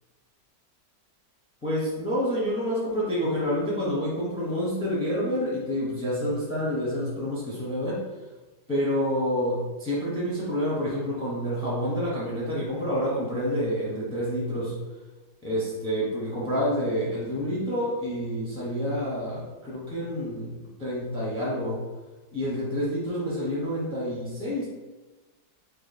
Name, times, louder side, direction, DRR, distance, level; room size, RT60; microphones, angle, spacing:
voice 1, 1.6-8.0 8.7-14.8 15.4-21.8 22.3-24.7, equal, 10° left, -7 dB, 0.7 m, -28 dB
3.1 x 2.9 x 4.1 m, 1.2 s
omnidirectional pair, 1.9 m